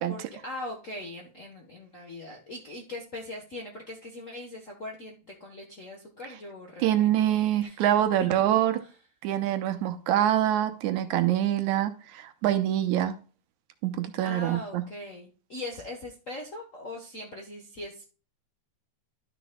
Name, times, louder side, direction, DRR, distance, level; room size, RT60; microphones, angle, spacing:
voice 1, 0.1-7.8 8.2-9.0 14.2-18.0, left 1 dB, 50° left, -1 dB, 0.9 m, -41 dB
voice 2, 6.8-8.8 9.2-13.2 13.8-14.8, right 12 dB, 90° right, 8 dB, 2.3 m, -25 dB
12.0 x 6.1 x 2.3 m, 0.37 s
omnidirectional pair, 3.3 m